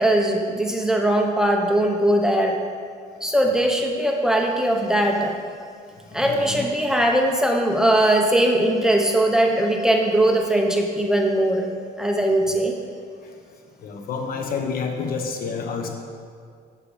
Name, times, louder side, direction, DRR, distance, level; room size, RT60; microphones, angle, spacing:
voice 1, 0.0-2.6 3.2-5.3 6.1-11.7 12.0-12.8, right 1 dB, 5° right, 1 dB, 0.9 m, -20 dB
voice 2, 6.2-6.7 12.4-12.6 13.8-15.9, left 5 dB, 60° left, 3 dB, 1.2 m, -29 dB
8.5 x 7.5 x 5.0 m, 2.2 s
cardioid pair, 110°, 17 cm